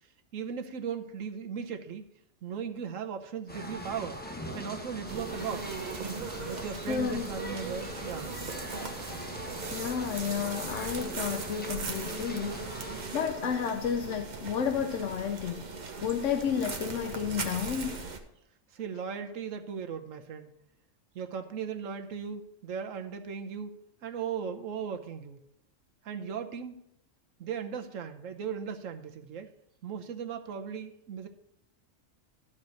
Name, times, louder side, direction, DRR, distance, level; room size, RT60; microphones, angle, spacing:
voice 1, 0.3-2.1 2.4-4.2 4.5-5.7 6.2-8.3 18.7-20.5 21.1-23.8 24.0-25.4 26.0-26.8 27.4-29.5 29.8-31.3, right 7 dB, 80° right, 5 dB, 1.2 m, -37 dB
sound 1, 3.5-13.1, left 1 dB, 10° left, 0.9 m, -42 dB
sound 2, 5.1-18.2, right 4 dB, 40° right, 0.9 m, -38 dB
voice 2, 6.9-7.3 9.7-15.7 16.0-18.0, left 7 dB, 75° left, 5 dB, 1.0 m, -32 dB
12.0 x 4.4 x 6.4 m, 0.80 s
omnidirectional pair, 1.3 m